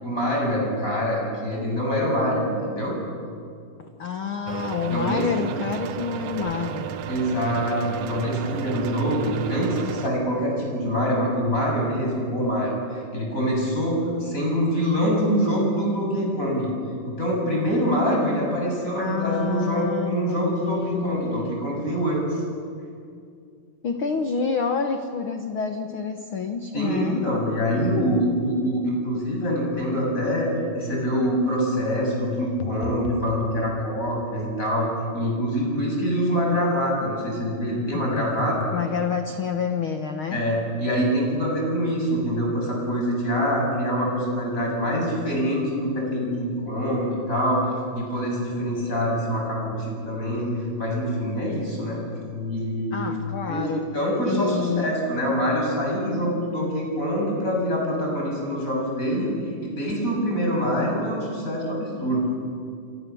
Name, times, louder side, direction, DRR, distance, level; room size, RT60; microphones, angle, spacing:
voice 1, 0.0-2.9 4.9-5.3 7.1-12.7 13.1-16.7 17.0-22.2 26.7-34.9 35.1-38.6 40.3-47.6 47.9-50.5 50.8-52.0 52.3-53.0 53.5-59.3 59.6-62.2, equal, 20° left, -1 dB, 7.6 m, -25 dB
voice 2, 3.8-6.9 19.0-21.6 23.8-27.2 38.7-40.4 52.9-53.8 54.2-54.9, left 6 dB, 65° left, 6 dB, 1.3 m, -28 dB
sound 1, 4.5-10.1, right 10 dB, 75° right, 1.5 m, -33 dB
sound 2, 32.6-33.5 37.9-38.8, left 6 dB, 85° left, 3.0 m, -35 dB
29.0 x 25.0 x 7.0 m, 2.4 s
omnidirectional pair, 4.0 m